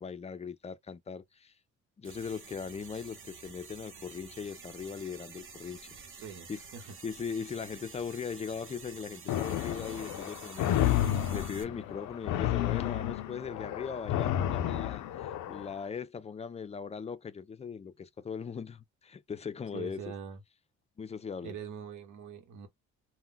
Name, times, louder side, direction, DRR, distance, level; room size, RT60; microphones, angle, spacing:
voice 1, 0.0-1.5 2.0-5.9 6.5-6.6 7.0-20.1 21.0-21.6, left 6 dB, 20° left, 0.4 m, -39 dB
sound 1, 2.0-11.6, right 5 dB, 45° right, 0.8 m, -49 dB
voice 2, 6.2-6.8 19.7-20.4 21.4-22.7, right 7 dB, 80° right, 1.0 m, -43 dB
sound 2, 9.3-15.7, left 12 dB, 80° left, 0.5 m, -31 dB
2.3 x 2.2 x 3.8 m
cardioid pair, 90°, 30 cm